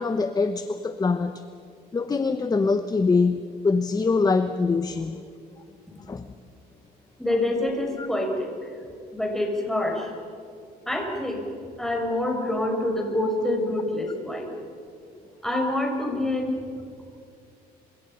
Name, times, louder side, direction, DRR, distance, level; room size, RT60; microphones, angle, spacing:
voice 1, 0.0-1.4 1.9-5.2 6.1-6.2 8.0-8.1, left 4 dB, 20° left, 9 dB, 1.0 m, -24 dB
voice 2, 7.2-8.5 9.1-10.1 10.9-11.4 11.8-14.5 15.4-16.6, left 1 dB, ahead, 1 dB, 6.6 m, -26 dB
28.0 x 26.5 x 5.7 m, 2.4 s
cardioid pair, 110°, 17 cm